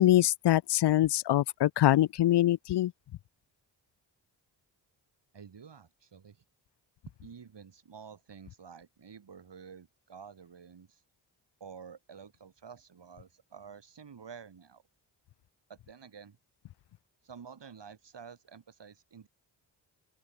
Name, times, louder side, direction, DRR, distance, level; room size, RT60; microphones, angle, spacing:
voice 1, 0.0-2.9, left 13 dB, 60° left, 0.6 m, -24 dB
voice 2, 5.3-6.4 7.2-11.0 11.6-14.8 15.7-16.4 17.2-19.3, right 6 dB, 60° right, 4.8 m, -50 dB
open air
cardioid pair, 50°, 48 cm